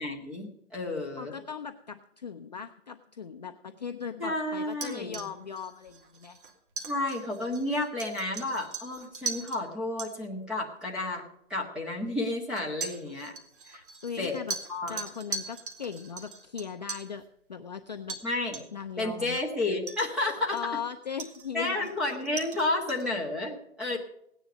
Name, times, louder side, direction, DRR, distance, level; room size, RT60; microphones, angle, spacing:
voice 1, 0.0-1.3 4.2-5.2 6.8-11.2 11.5-13.3 13.7-13.8 14.2-14.4 14.7-15.0 18.2-18.6 19.0-20.6 21.5-24.0, left 2 dB, ahead, -3 dB, 1.5 m, -31 dB
voice 2, 1.2-6.4 14.0-14.6 14.9-17.2 17.5-18.2 18.7-19.4 20.5-21.9, left 7 dB, 35° left, 6 dB, 0.5 m, -38 dB
sound 1, 4.7-9.6 10.0-10.1 11.1-11.2 12.6-17.1 18.1-18.3 18.5-18.9 19.3-19.4 19.9-20.8 21.2-23.1, right 4 dB, 45° right, 2.4 m, -40 dB
17.5 x 10.0 x 5.2 m, 0.78 s
hypercardioid pair, 175°, 38 cm